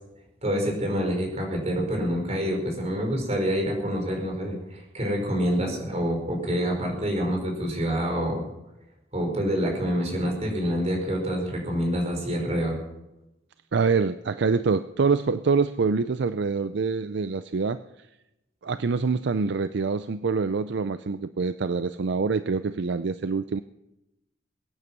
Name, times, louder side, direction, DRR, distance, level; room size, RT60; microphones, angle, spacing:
voice 1, 0.4-8.4 9.1-12.8, equal, 35° right, 1 dB, 4.9 m, -27 dB
voice 2, 13.7-17.8 18.6-23.6, right 4 dB, 65° right, 12 dB, 0.5 m, -25 dB
21.5 x 9.7 x 6.1 m, 0.91 s
head